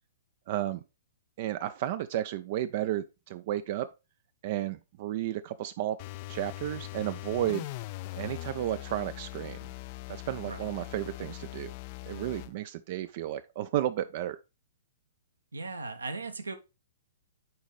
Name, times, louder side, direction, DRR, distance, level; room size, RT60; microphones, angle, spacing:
voice 1, 0.5-0.8 1.4-3.9 4.4-6.0 6.3-7.6 8.2-9.6 10.1-11.7 12.1-14.4, right 12 dB, 40° right, 0.4 m, -32 dB
sound 1, 6.0-12.5, left 19 dB, 35° left, 0.3 m, -41 dB
voice 2, 15.5-16.6, right 3 dB, 75° right, 1.0 m, -37 dB
8.7 x 4.1 x 3.4 m
figure-of-eight pair, 115°, 0 cm